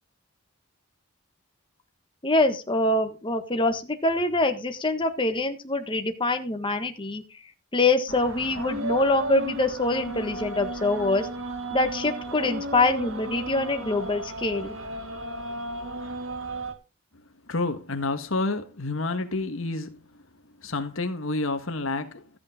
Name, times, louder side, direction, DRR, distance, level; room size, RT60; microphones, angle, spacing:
voice 1, 2.2-7.2 7.7-11.3 11.7-14.8, left 2 dB, 25° left, 1.5 m, -24 dB
sound 1, 8.1-16.7, right 1 dB, 65° right, 2.1 m, -34 dB
voice 2, 17.5-20.0 20.6-22.4, left 2 dB, 65° left, 1.5 m, -29 dB
14.0 x 8.7 x 3.7 m
head